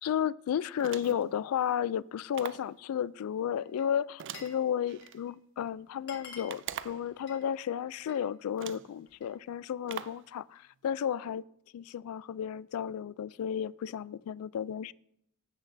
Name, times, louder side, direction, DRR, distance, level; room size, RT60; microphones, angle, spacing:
voice 1, 0.0-11.4 11.7-14.9, left 9 dB, 90° left, 0.3 m, -33 dB
sound 1, 0.8-1.3 2.3-2.7 4.2-5.2 6.5-7.1 8.0-8.1 8.6-8.9 9.9-10.3, right 9 dB, 55° right, 0.3 m, -42 dB
Glass, 3.6-4.6 4.9-5.3 5.7-5.8 6.0-8.3 8.6-9.4, left 5 dB, 50° left, 1.6 m, -51 dB
15.5 x 8.1 x 2.6 m
head